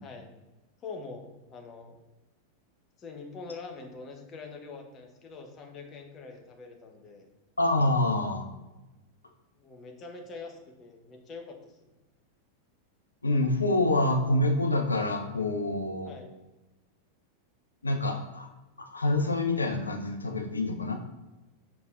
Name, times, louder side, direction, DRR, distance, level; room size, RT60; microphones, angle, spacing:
voice 1, 0.0-0.3 0.8-2.0 3.0-7.3 9.6-11.9 16.0-16.3, left 4 dB, 30° left, 3 dB, 0.8 m, -44 dB
voice 2, 7.6-8.5 13.2-16.1 17.8-18.5 18.8-20.9, left 2 dB, 80° left, 5 dB, 0.5 m, -26 dB
5.5 x 3.9 x 2.4 m, 1.1 s
figure-of-eight pair, 90°, 0 cm